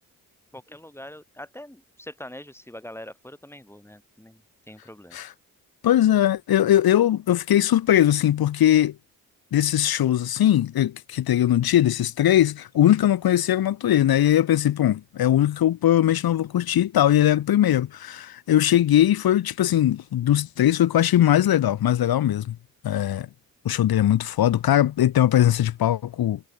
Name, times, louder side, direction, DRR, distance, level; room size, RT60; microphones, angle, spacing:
voice 1, 0.5-4.4 4.7-5.2, left 1 dB, 5° left, 7.6 m, -43 dB
voice 2, 5.8-9.0 9.5-22.6 22.8-23.3 23.7-26.4, left 12 dB, 80° left, 1.7 m, -20 dB
cardioid pair, 60°, 36 cm